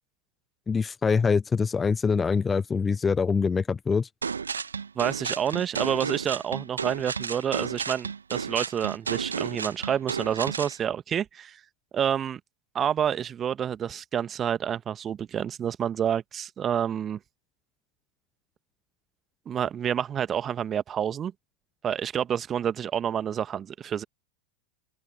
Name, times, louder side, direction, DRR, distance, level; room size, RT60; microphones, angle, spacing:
voice 1, 0.7-4.1, left 5 dB, 15° left, 0.6 m, -24 dB
sound 1, 4.2-10.8, right 6 dB, 75° right, 1.6 m, -32 dB
voice 2, 4.9-11.6 11.9-12.4 12.7-17.2 19.4-21.3 21.8-24.0, right 9 dB, 25° right, 1.5 m, -28 dB
figure-of-eight pair, 90°, 0 cm